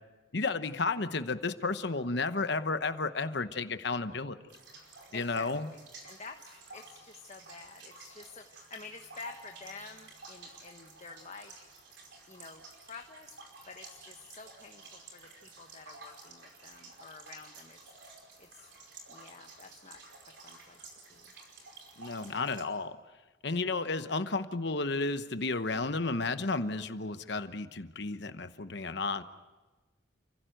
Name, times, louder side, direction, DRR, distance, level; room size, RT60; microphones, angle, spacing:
voice 1, 0.3-4.4 5.1-5.7 22.0-23.0 23.4-29.2, left 3 dB, 55° left, 11 dB, 1.0 m, -32 dB
sound 1, 4.5-22.6, right 3 dB, 60° right, 5.1 m, -52 dB
voice 2, 5.1-5.5 6.0-11.7 12.3-17.9 18.4-18.7 19.1-20.0 20.4-21.3, left 4 dB, 35° left, 4 dB, 1.2 m, -49 dB
29.5 x 16.0 x 9.1 m, 1.2 s
head